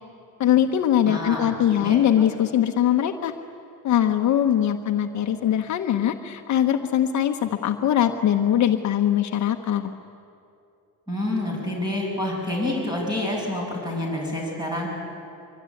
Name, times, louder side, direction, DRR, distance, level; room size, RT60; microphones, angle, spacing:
voice 1, 0.4-3.3 3.8-9.9, left 10 dB, 50° left, 5 dB, 1.1 m, -21 dB
voice 2, 1.1-2.3 11.1-15.0, left 1 dB, 10° right, -2 dB, 7.9 m, -28 dB
24.5 x 24.0 x 9.9 m, 2.6 s
cardioid pair, 165°, 35 cm